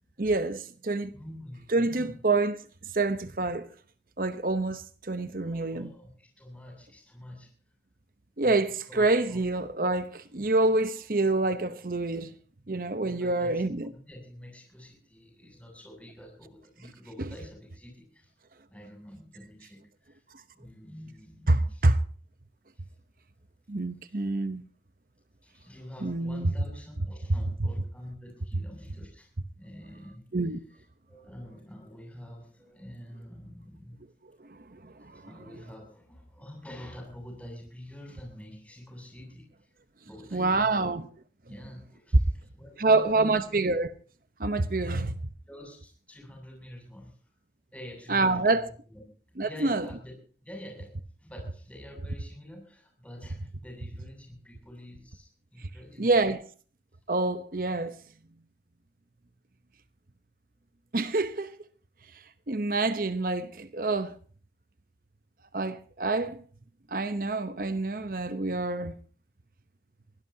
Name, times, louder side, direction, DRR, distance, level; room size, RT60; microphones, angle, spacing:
voice 1, 0.2-1.1 1.7-2.6 2.9-3.7 4.2-5.9 8.4-12.3 12.7-13.9 17.2-17.3 21.5-22.0 23.7-24.6 26.0-26.5 30.3-30.6 34.5-35.2 40.3-41.0 42.8-43.9 44.4-45.1 48.1-48.7 49.4-49.9 56.0-56.5 57.1-58.0 60.9-61.5 62.5-64.1 65.5-66.4 66.9-68.9, right 2 dB, 50° right, 0.9 m, -27 dB
voice 2, 1.1-2.1 5.4-7.8 8.4-9.5 10.7-10.8 11.4-11.5 12.9-18.4 18.7-20.2 20.5-21.9 22.7-22.9 24.0-24.3 25.4-29.3 29.6-30.2 30.7-34.0 34.7-39.7 40.0-40.9 41.5-43.4 44.8-45.1 45.5-47.4 47.7-49.0 49.4-50.1 50.4-50.9 51.2-56.1, left 1 dB, 10° left, 7.5 m, -47 dB
23.5 x 17.5 x 2.8 m
head